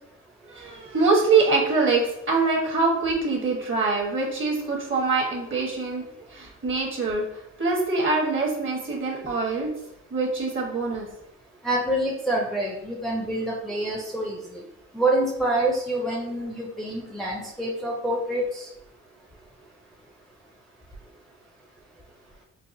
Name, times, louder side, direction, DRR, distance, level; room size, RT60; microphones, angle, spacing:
voice 1, 0.5-6.0 6.3-7.2 7.6-9.7 10.1-11.1, right 3 dB, 40° right, -1 dB, 1.2 m, -24 dB
voice 2, 11.6-14.6 14.9-18.7, right 1 dB, ahead, -3 dB, 0.6 m, -26 dB
4.6 x 2.2 x 2.6 m, 0.81 s
cardioid pair, 90°, 30 cm